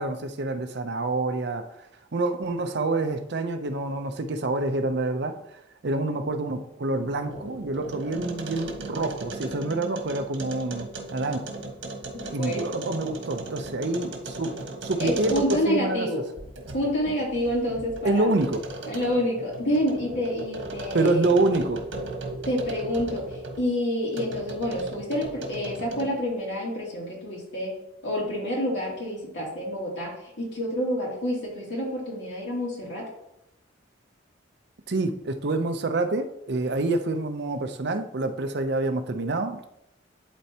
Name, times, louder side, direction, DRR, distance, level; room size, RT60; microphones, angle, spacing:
voice 1, 0.0-1.9 2.1-5.4 5.8-11.5 12.3-14.6 14.8-16.1 18.0-18.6 20.9-21.8 34.9-39.6, right 2 dB, 60° right, 7 dB, 0.6 m, -27 dB
sound 1, 6.9-15.9 16.4-23.7 24.1-26.2, right 2 dB, 90° right, 1.4 m, -37 dB
voice 2, 12.1-12.7 15.0-16.2 16.7-18.3 18.9-21.3 22.4-27.7 28.0-33.1, equal, 65° left, -4 dB, 2.9 m, -28 dB
11.5 x 4.3 x 2.9 m, 0.83 s
head